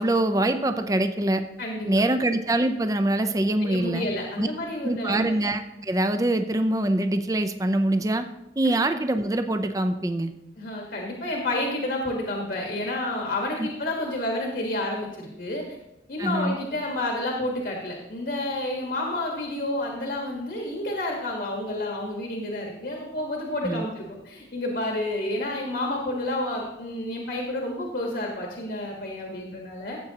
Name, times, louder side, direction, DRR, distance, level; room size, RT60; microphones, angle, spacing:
voice 1, 0.0-1.4 1.9-4.1 4.4-4.5 4.8-8.3 8.6-10.3 13.6-13.7 16.2-16.6 23.6-23.9, right 1 dB, 20° right, 8 dB, 0.4 m, -24 dB
voice 2, 1.6-1.9 3.6-5.4 8.6-8.8 10.6-15.6 16.1-30.0, left 1 dB, 65° left, 0 dB, 1.4 m, -30 dB
14.5 x 7.8 x 2.9 m, 0.90 s
head